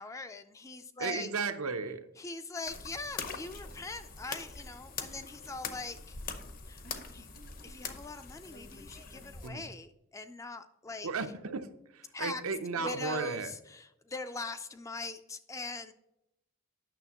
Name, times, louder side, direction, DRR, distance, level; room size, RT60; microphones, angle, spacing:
voice 1, 0.0-1.3 2.2-6.2 6.7-6.8 7.1-7.3 7.6-11.1 12.1-12.4 12.7-15.9, left 3 dB, 15° left, 10 dB, 0.3 m, -41 dB
voice 2, 1.0-2.0 9.4-9.6 11.0-11.7 11.9-13.5, right 4 dB, 85° right, 8 dB, 0.7 m, -34 dB
sound 1, 2.7-9.5, left 5 dB, 40° left, 0.7 m, -43 dB
9.0 x 6.4 x 2.9 m, 0.85 s
head